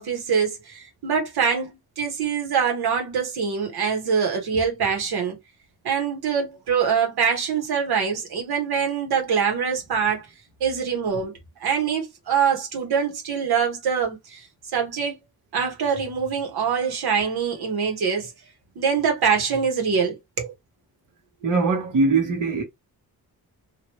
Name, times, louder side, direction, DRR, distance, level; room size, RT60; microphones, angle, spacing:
voice 1, 0.0-5.4 5.8-10.3 10.6-14.5 14.7-15.2 15.5-18.3 18.7-20.5, right 6 dB, 85° right, 1.3 m, -24 dB
voice 2, 21.4-22.6, right 3 dB, 55° right, 1.0 m, -21 dB
3.0 x 2.5 x 2.9 m
wide cardioid pair, 135°, 37 cm